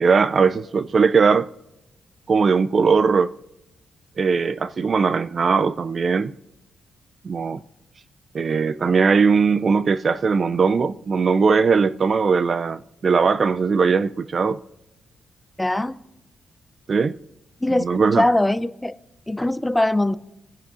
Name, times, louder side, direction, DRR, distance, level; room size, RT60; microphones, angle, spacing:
voice 1, 0.0-1.5 2.3-3.3 4.2-6.3 7.2-7.6 8.3-14.6 16.9-17.2 17.7-18.2, right 5 dB, 45° right, 0.4 m, -19 dB
voice 2, 15.6-16.0 17.6-17.9 18.2-18.9 19.3-20.2, left 1 dB, 10° left, 0.5 m, -21 dB
24.5 x 10.0 x 2.6 m
cardioid pair, 80°, 0 cm